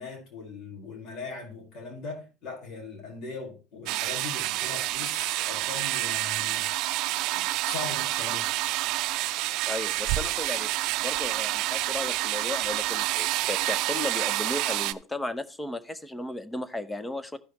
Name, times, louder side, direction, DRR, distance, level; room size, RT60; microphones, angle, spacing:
voice 1, 0.0-6.8 7.3-8.5, left 4 dB, 55° left, 4.9 m, -40 dB
sound 1, 3.9-14.9, right 17 dB, 65° right, 0.5 m, -28 dB
voice 2, 9.7-10.7 11.0-17.4, left 2 dB, 10° left, 0.8 m, -35 dB
14.5 x 5.5 x 3.1 m
cardioid pair, 135°, 0 cm